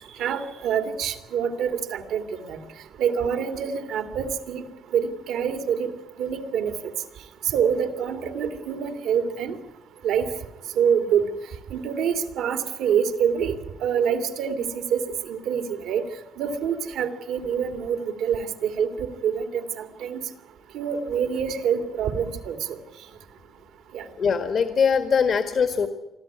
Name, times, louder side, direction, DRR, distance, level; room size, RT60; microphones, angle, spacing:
voice 1, 0.2-2.6 3.0-4.6 4.9-5.9 6.2-6.7 7.5-9.5 10.0-10.3 10.8-11.2 11.7-13.6 13.8-15.0 15.3-16.0 16.4-20.2 20.7-22.8 23.9-24.0, right 7 dB, 85° right, 7 dB, 2.4 m, -26 dB
voice 2, 24.2-25.9, left 6 dB, 60° left, 8 dB, 1.7 m, -22 dB
25.0 x 14.0 x 9.6 m, 1.0 s
cardioid pair, 90°, 0 cm